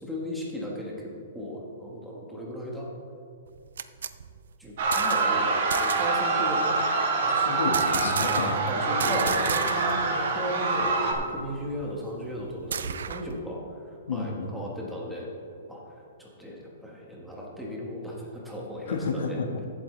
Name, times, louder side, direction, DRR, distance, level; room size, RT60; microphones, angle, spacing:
voice 1, 0.0-2.9 4.6-7.4 8.1-15.3 15.7-15.8 16.2-19.4, equal, ahead, -4 dB, 1.3 m, -36 dB
sound 1, 3.5-5.4 5.7-6.2 7.7-8.7 9.0-10.1 10.3-10.4 10.8-13.4, right 7 dB, 85° right, 0.4 m, -34 dB
sound 2, 4.8-11.1, right 3 dB, 45° right, 1.3 m, -25 dB
voice 2, 7.3-8.6 9.0-9.5 14.1-14.5 18.9-19.7, left 4 dB, 90° left, 4 dB, 1.4 m, -31 dB
14.5 x 8.4 x 3.2 m, 2.5 s
hypercardioid pair, 175°, 0 cm